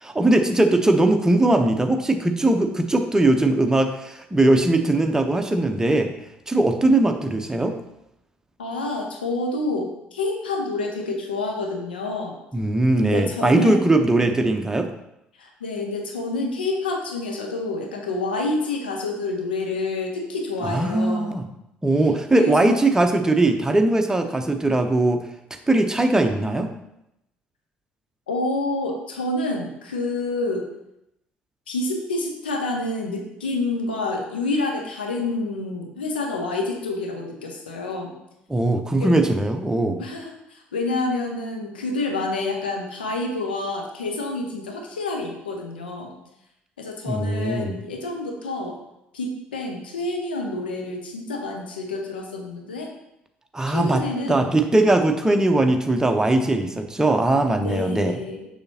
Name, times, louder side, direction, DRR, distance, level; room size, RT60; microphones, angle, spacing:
voice 1, 0.0-6.1 6.5-7.7 12.5-14.9 20.7-21.4 21.8-25.2 25.7-26.7 38.5-40.0 47.0-47.7 53.5-54.0 54.3-58.2, right 2 dB, 10° right, 5 dB, 0.8 m, -20 dB
voice 2, 8.6-12.3 13.0-13.8 15.4-21.3 22.4-22.7 28.3-30.7 31.7-38.1 39.0-39.2 40.0-46.1 46.8-48.8 49.1-52.9 53.7-54.5 57.5-58.5, left 2 dB, 80° left, 2 dB, 0.8 m, -28 dB
6.7 x 5.8 x 2.8 m, 0.85 s
figure-of-eight pair, 50°, 5 cm